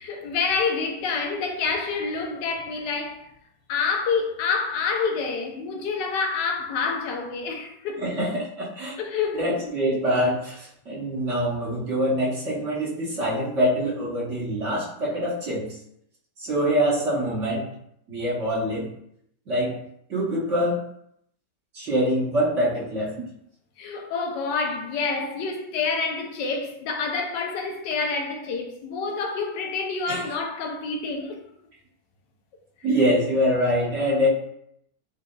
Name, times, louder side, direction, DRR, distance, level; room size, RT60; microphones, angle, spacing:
voice 1, 0.0-3.3 3.7-8.1 9.0-9.7 23.8-31.4, left 4 dB, 80° left, 1.3 m, -28 dB
voice 2, 8.0-8.9 9.4-15.8 16.4-17.7 18.1-18.9 19.5-19.8 20.1-20.8 21.7-23.1 30.1-30.2 32.8-34.3, equal, 50° right, 1.3 m, -24 dB
7.3 x 2.6 x 2.3 m
omnidirectional pair, 1.9 m